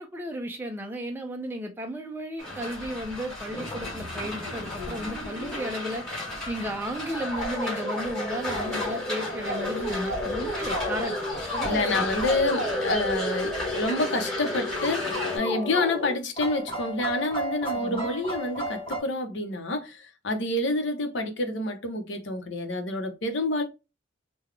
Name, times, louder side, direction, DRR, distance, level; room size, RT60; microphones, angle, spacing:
voice 1, 0.0-12.1 17.7-18.1, equal, 10° right, 0.4 m, -34 dB
sound 1, 2.4-15.4, left 2 dB, 5° left, 1.7 m, -35 dB
sound 2, 3.5-19.0, equal, 25° left, 1.1 m, -33 dB
voice 2, 11.6-23.6, left 2 dB, 65° left, 0.7 m, -28 dB
3.8 x 2.2 x 3.1 m
head